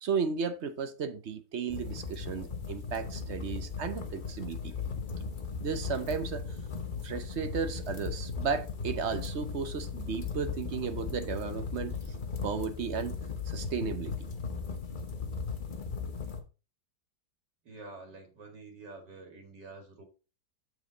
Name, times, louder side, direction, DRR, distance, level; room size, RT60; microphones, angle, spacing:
voice 1, 0.0-4.7 5.6-6.4 7.0-12.0 12.4-13.1 13.5-14.1, right 6 dB, 50° right, 0.9 m, -34 dB
sound 1, 1.7-16.4, left 5 dB, 35° left, 1.0 m, -37 dB
voice 2, 17.6-20.0, right 3 dB, 80° right, 2.5 m, -48 dB
7.2 x 6.3 x 3.9 m
omnidirectional pair, 1.8 m